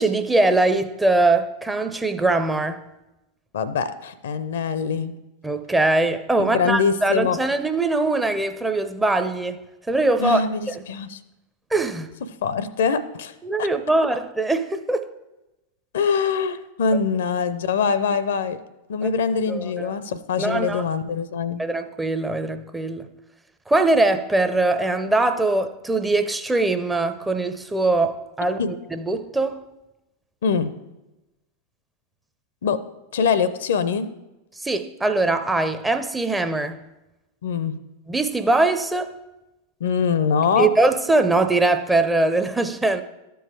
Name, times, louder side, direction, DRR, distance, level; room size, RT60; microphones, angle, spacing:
voice 1, 0.0-2.8 5.4-10.4 10.7-10.8 11.7-12.1 13.4-15.1 19.5-19.9 20.4-20.8 21.6-23.1 23.7-29.6 34.6-36.8 38.1-39.2 40.6-43.0, right 2 dB, 10° right, 0.5 m, -22 dB
voice 2, 3.5-5.1 6.4-7.4 10.2-11.2 12.4-13.3 13.6-13.7 15.9-18.6 18.9-21.6 28.6-28.7 30.4-30.7 32.6-32.8 33.1-34.1 37.4-37.8 39.8-40.7, left 6 dB, 60° left, 0.5 m, -23 dB
13.0 x 4.6 x 4.7 m
figure-of-eight pair, 90°, 0 cm